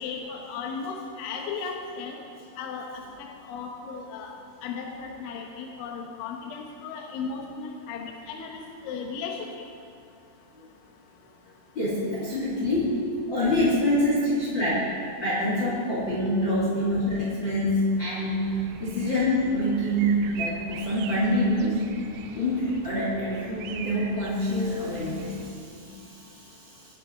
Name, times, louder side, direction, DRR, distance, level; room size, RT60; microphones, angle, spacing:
voice 1, 0.0-2.2 2.6-4.3 4.6-9.5, left 5 dB, 75° left, 1 dB, 3.3 m, -36 dB
voice 2, 11.7-13.0 13.3-14.9 15.2-21.9 22.3-26.9, left 1 dB, 30° left, -6 dB, 2.3 m, -26 dB
sound 1, 18.4-25.5, right 5 dB, 80° right, 3.4 m, -41 dB
22.0 x 9.7 x 4.4 m, 2.5 s
omnidirectional pair, 5.8 m